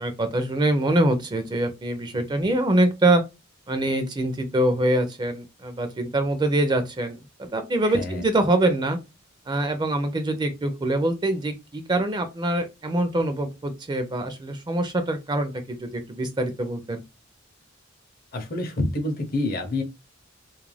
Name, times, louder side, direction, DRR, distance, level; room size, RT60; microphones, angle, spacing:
voice 1, 0.0-3.2 3.7-9.0 9.5-17.0, right 1 dB, 20° right, 0.4 m, -24 dB
voice 2, 2.1-2.6 7.8-8.3 18.3-19.8, left 2 dB, 50° left, 0.6 m, -28 dB
2.4 x 2.2 x 3.1 m
head